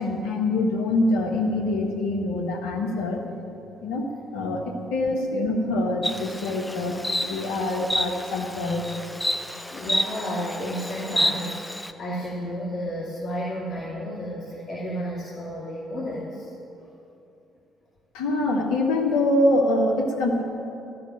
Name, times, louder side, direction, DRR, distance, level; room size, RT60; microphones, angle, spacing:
voice 1, 0.0-3.2 3.8-8.8 18.1-20.4, left 2 dB, 65° left, 1 dB, 1.5 m, -25 dB
Insect, 6.0-11.9, left 1 dB, 5° left, 0.7 m, -29 dB
voice 2, 9.7-16.5 16.8-16.9, equal, 35° left, -6 dB, 2.6 m, -32 dB
14.0 x 7.0 x 9.0 m, 2.8 s
figure-of-eight pair, 45°, 0 cm